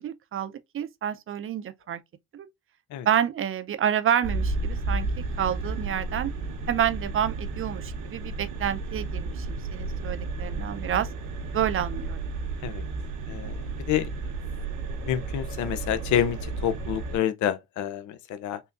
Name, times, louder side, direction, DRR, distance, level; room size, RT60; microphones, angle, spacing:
voice 1, 0.0-2.0 2.3-2.5 3.1-5.1 5.4-6.3 6.7-11.1 11.5-12.3, right 9 dB, 45° right, 0.5 m, -28 dB
sound 1, 4.2-17.2, right 3 dB, 90° right, 0.9 m, -32 dB
voice 2, 13.3-14.1 15.0-18.6, left 10 dB, 75° left, 0.5 m, -28 dB
3.6 x 2.7 x 2.4 m
cardioid pair, 90°, 30 cm